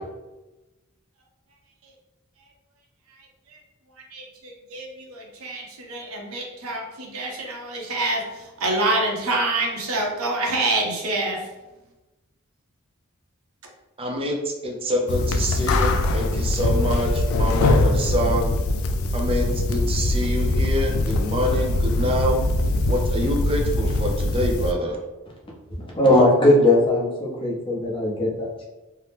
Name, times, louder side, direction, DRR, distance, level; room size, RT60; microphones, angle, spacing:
voice 1, 4.1-8.2 8.6-11.4, right 2 dB, 80° right, 0.6 m, -26 dB
voice 2, 14.0-18.5 19.1-22.4 22.9-25.0, equal, 25° right, 0.4 m, -26 dB
sound 1, 15.1-24.7, left 2 dB, 75° left, 0.3 m, -22 dB
voice 3, 25.8-28.7, left 1 dB, 25° left, 0.7 m, -19 dB
2.8 x 2.0 x 3.3 m
head